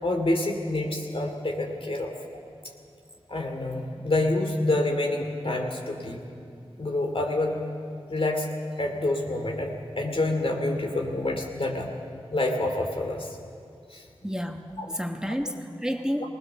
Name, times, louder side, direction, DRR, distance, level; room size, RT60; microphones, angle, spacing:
voice 1, 0.0-2.1 3.3-6.2 6.8-7.6 8.1-8.5 8.8-11.9 12.3-13.4 13.9-14.3 14.8-14.9 16.2-16.3, left 2 dB, 65° left, 2 dB, 2.7 m, -27 dB
voice 2, 14.2-16.3, equal, 5° right, 4 dB, 1.1 m, -30 dB
20.0 x 19.5 x 6.9 m, 2.5 s
wide cardioid pair, 50°, 10 cm